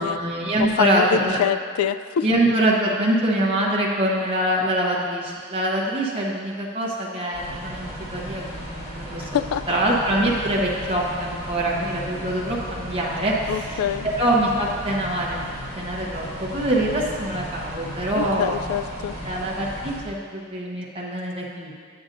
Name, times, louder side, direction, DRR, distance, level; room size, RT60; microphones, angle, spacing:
voice 1, 0.0-1.4 2.2-9.4 9.7-13.3 13.7-13.8 14.1-15.5 15.8-18.6 19.2-21.7, right 1 dB, 25° right, -5 dB, 0.9 m, -24 dB
voice 2, 0.6-2.3 9.2-9.6 13.5-14.1 18.1-19.2, left 8 dB, 85° left, 14 dB, 0.3 m, -25 dB
sound 1, 7.3-20.0, equal, 30° left, 1.6 m, -35 dB
8.7 x 8.7 x 2.6 m, 2.1 s
head